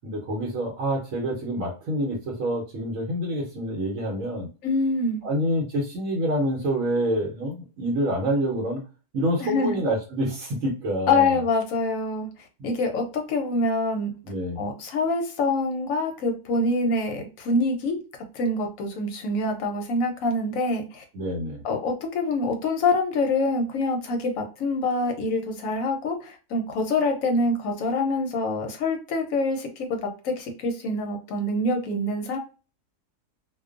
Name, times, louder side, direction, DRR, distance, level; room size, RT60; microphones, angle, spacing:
voice 1, 0.0-4.5 5.2-8.8 9.1-11.3 14.2-14.6 21.1-21.6, equal, 65° right, 0 dB, 1.1 m, -27 dB
voice 2, 4.6-5.2 9.4-9.8 11.1-12.3 12.6-14.1 14.6-18.0 18.3-21.0 21.6-32.4, left 2 dB, 70° left, 4 dB, 0.9 m, -25 dB
2.4 x 2.2 x 2.4 m, 0.34 s
omnidirectional pair, 1.6 m